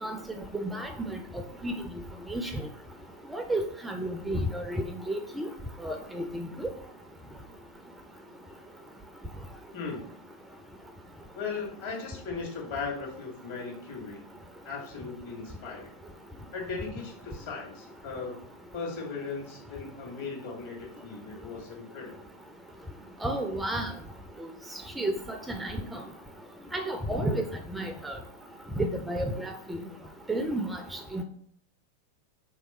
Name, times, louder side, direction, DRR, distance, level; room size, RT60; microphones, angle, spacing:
voice 1, 0.6-1.2 1.6-1.7 2.3-2.5 3.3-5.5 5.8-6.7 23.2-23.9 25.0-26.0 26.7-27.4 27.7-28.2 28.8-29.8 30.3-31.2, right 1 dB, 5° right, 5 dB, 0.4 m, -31 dB
voice 2, 9.7-10.1 11.3-14.2 14.6-16.0 16.5-18.4 18.7-22.3, left 4 dB, 55° left, -1 dB, 1.6 m, -38 dB
3.4 x 2.9 x 4.1 m, 0.62 s
figure-of-eight pair, 90°, 0 cm